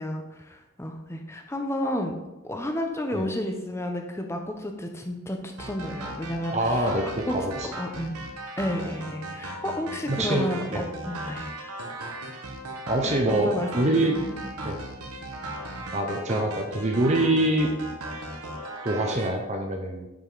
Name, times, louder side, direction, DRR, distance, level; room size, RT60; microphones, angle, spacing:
voice 1, 0.0-2.1 2.4-6.9 7.3-7.4 7.6-8.1 8.6-11.5 13.0-14.4, left 1 dB, 10° left, 3 dB, 0.8 m, -32 dB
sound 1, 5.6-19.3, right 1 dB, 90° right, 1.2 m, -37 dB
voice 2, 6.5-7.7 10.1-10.8 12.9-14.2 14.6-14.8 15.9-17.7 18.8-20.1, right 1 dB, 30° right, 2 dB, 0.8 m, -25 dB
9.9 x 5.3 x 4.0 m, 1.0 s
head